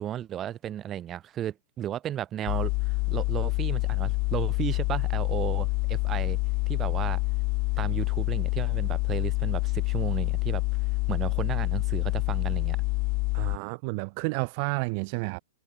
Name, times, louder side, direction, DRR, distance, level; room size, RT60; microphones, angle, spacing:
voice 1, 0.0-6.4 6.7-7.2 7.8-10.6 11.1-12.8, right 11 dB, 25° right, 4.7 m, -34 dB
sound 1, 2.5-13.6, left 29 dB, 45° left, 3.2 m, -27 dB
voice 2, 13.3-15.4, right 34 dB, 45° right, 2.0 m, -31 dB
hypercardioid pair, 115°, 0 cm